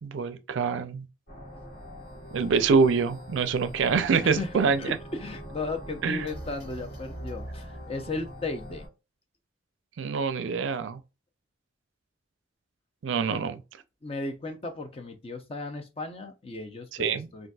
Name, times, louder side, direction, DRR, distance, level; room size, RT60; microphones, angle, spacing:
voice 1, 0.0-1.1 2.3-5.0 6.0-6.3 10.0-11.0 13.0-13.6 17.0-17.3, right 5 dB, 70° right, 0.4 m, -25 dB
sound 1, 1.3-8.9, equal, 55° left, 1.6 m, -42 dB
voice 2, 4.2-8.9 13.3-13.4 14.0-17.5, left 3 dB, 30° left, 0.5 m, -36 dB
3.9 x 2.4 x 2.3 m
head